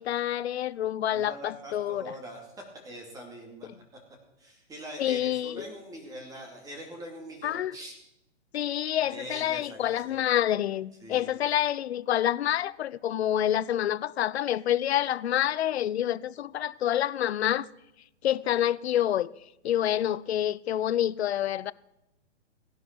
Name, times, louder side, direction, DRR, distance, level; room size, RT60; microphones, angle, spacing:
voice 1, 0.0-2.0 5.0-5.7 7.4-7.7 8.5-17.7 18.2-19.3 19.6-21.7, left 11 dB, 65° left, 0.6 m, -27 dB
voice 2, 1.1-3.7 4.4-8.0 9.1-10.2 11.0-11.3, right 1 dB, 10° right, 2.4 m, -43 dB
16.5 x 11.0 x 4.6 m
hypercardioid pair, 155°, 35 cm